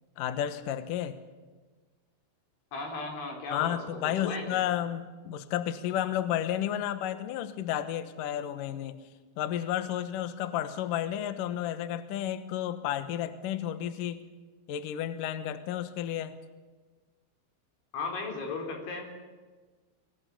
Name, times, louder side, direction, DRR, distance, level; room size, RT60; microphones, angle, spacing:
voice 1, 0.2-1.2 3.5-9.0 9.4-14.2 14.7-16.4, left 11 dB, 85° left, 11 dB, 1.9 m, -32 dB
voice 2, 2.7-4.6 17.9-19.3, left 3 dB, 65° left, 2 dB, 6.3 m, -36 dB
24.5 x 17.0 x 8.5 m, 1.3 s
omnidirectional pair, 5.7 m